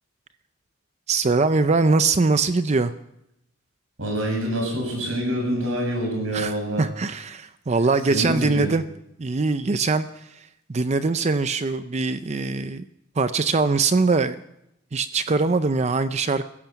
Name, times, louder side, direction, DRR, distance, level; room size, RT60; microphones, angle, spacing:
voice 1, 1.1-2.9 6.3-8.8 9.2-10.1 10.3-10.4 10.7-12.8 13.2-14.4 14.9-16.4, right 3 dB, 30° right, 12 dB, 0.5 m, -22 dB
voice 2, 4.0-6.9 8.1-8.7, right 1 dB, 70° right, 0 dB, 7.4 m, -26 dB
16.0 x 14.5 x 6.0 m, 0.83 s
head